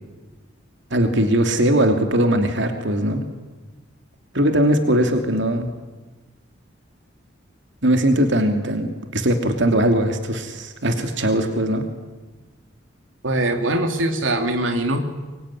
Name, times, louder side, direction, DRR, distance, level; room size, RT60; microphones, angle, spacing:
voice 1, 0.9-3.2 4.3-5.7 7.8-11.8, right 1 dB, 65° right, 6 dB, 2.8 m, -20 dB
voice 2, 13.2-15.0, right 1 dB, 80° right, 5 dB, 2.9 m, -22 dB
25.0 x 23.5 x 9.9 m, 1.2 s
head